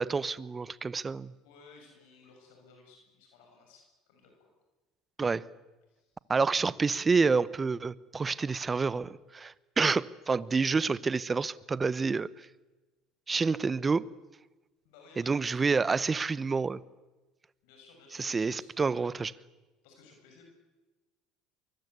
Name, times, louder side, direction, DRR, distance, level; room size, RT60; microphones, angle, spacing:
voice 1, 0.0-1.3 5.2-5.4 6.3-12.5 13.3-14.0 15.2-16.8 18.2-19.3, right 4 dB, 25° right, 0.9 m, -28 dB
voice 2, 1.4-4.5 5.9-6.2 14.8-16.2 17.6-19.3 19.8-20.4, left 4 dB, 80° left, 6.9 m, -57 dB
24.0 x 22.0 x 8.3 m
supercardioid pair, 95°, 0 cm